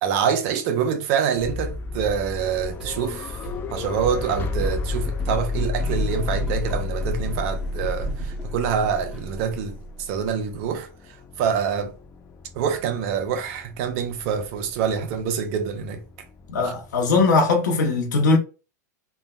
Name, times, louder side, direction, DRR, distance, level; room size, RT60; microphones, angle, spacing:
voice 1, 0.0-3.4 3.7-10.9 11.4-11.9 12.5-16.0 16.6-16.7, right 7 dB, 50° right, 0.6 m, -26 dB
sound 1, 1.4-17.3, left 4 dB, 20° left, 0.4 m, -32 dB
sound 2, 2.4-3.1 3.4-9.5, right 2 dB, 5° right, 0.9 m, -34 dB
voice 2, 16.5-18.4, left 3 dB, 85° left, 0.8 m, -20 dB
3.4 x 2.0 x 2.3 m
hypercardioid pair, 130°, 10 cm